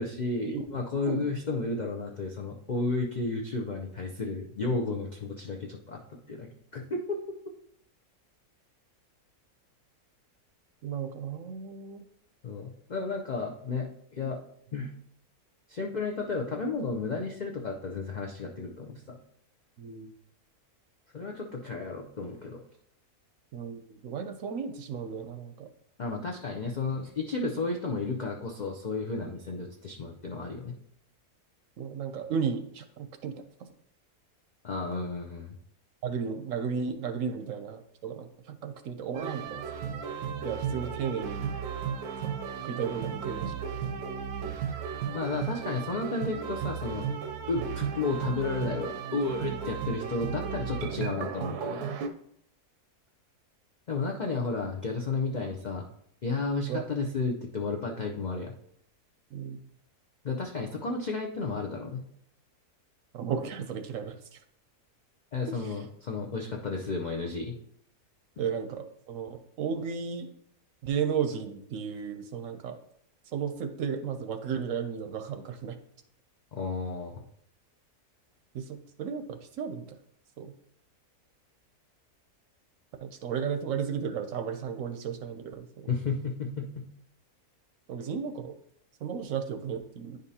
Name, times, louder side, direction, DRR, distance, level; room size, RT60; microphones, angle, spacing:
voice 1, 0.0-7.2 12.4-13.9 14.1-14.4 14.7-14.9 15.7-19.2 21.1-22.6 26.0-30.7 34.6-35.6 45.1-47.1 47.5-51.9 53.9-55.9 56.2-58.5 60.2-62.0 65.3-67.5 76.5-77.2 85.9-86.9, left 3 dB, 70° left, 0 dB, 0.4 m, -32 dB
voice 2, 10.8-12.0 19.8-20.1 23.5-25.7 31.8-33.3 36.0-39.7 40.4-41.4 42.2-42.4 42.6-43.7 56.7-56.8 59.3-59.6 63.1-64.2 65.6-65.7 68.4-70.3 70.8-72.8 73.3-75.8 78.5-79.9 80.4-80.5 83.0-85.9 87.9-88.5 89.0-90.2, right 7 dB, 65° right, 8 dB, 0.9 m, -34 dB
sound 1, 39.1-52.1, right 7 dB, 85° right, 1.2 m, -34 dB
9.7 x 5.2 x 2.8 m, 0.71 s
omnidirectional pair, 1.6 m